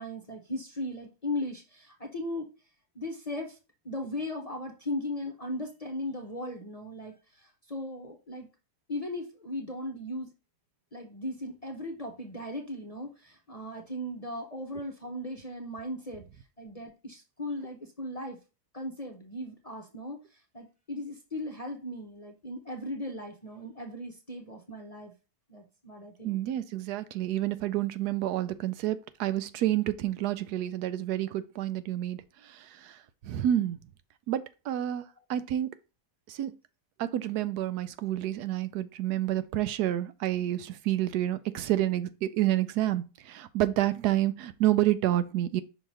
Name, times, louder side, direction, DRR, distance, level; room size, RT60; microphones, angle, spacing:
voice 1, 0.0-2.5 2.9-3.6 3.8-8.5 8.9-10.3 10.9-16.3 16.6-18.4 18.7-25.1 25.5-26.4, left 1 dB, 35° left, 0.6 m, -37 dB
voice 2, 26.2-33.0 33.2-33.8 34.3-35.0 35.3-35.7 36.3-36.5 37.0-45.6, right 13 dB, 85° right, 1.2 m, -29 dB
5.8 x 3.1 x 5.4 m
omnidirectional pair, 1.7 m